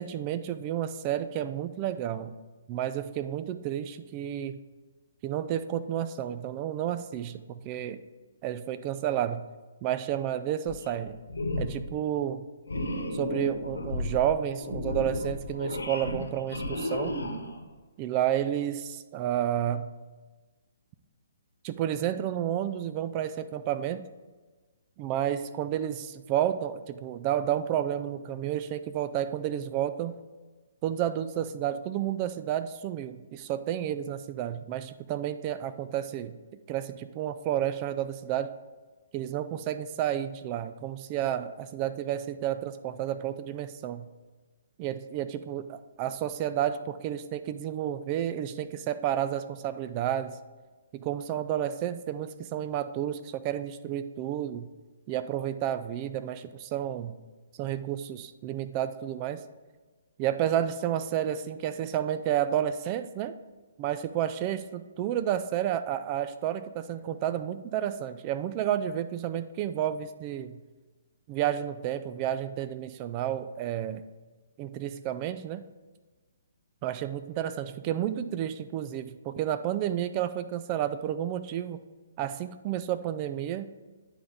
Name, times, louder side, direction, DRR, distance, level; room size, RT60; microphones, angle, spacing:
voice 1, 0.0-2.4 2.7-4.6 5.2-8.0 8.4-9.4 9.8-11.2 11.6-12.5 13.1-17.1 18.0-19.9 21.6-24.1 25.0-30.1 30.8-36.4 36.7-38.5 39.1-44.1 44.8-50.4 50.9-54.7 55.1-57.1 57.6-59.4 60.2-63.4 63.8-70.6 71.3-74.0 74.6-75.6 76.8-81.8 82.2-83.7, right 11 dB, 30° right, 12 dB, 0.4 m, -31 dB
sound 1, 10.7-11.0 11.3-11.9 12.7-17.7, left 1 dB, 80° left, 1.2 m, -33 dB
9.9 x 3.9 x 3.5 m, 1.3 s
figure-of-eight pair, 130°, 0 cm